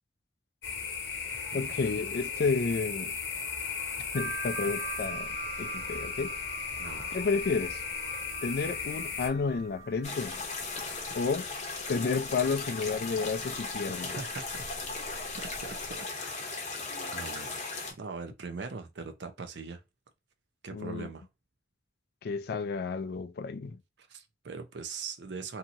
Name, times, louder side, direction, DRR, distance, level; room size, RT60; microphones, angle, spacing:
sound 1, 0.6-9.3, left 5 dB, 85° left, 1.0 m, -36 dB
voice 1, 1.5-3.2 4.1-6.4 7.1-7.8 8.4-10.4 11.2-11.4 11.9-14.1 20.7-21.1 22.2-23.8, left 4 dB, 65° left, 0.4 m, -31 dB
sound 2, 4.1-16.0, right 4 dB, 15° right, 0.3 m, -45 dB
voice 2, 6.8-7.1 13.8-14.7 15.3-16.6 17.0-17.6 18.0-19.8 20.6-21.3 24.0-25.6, right 4 dB, 80° right, 0.6 m, -41 dB
sound 3, 10.0-17.9, left 3 dB, 40° left, 0.8 m, -37 dB
2.8 x 2.7 x 2.5 m
head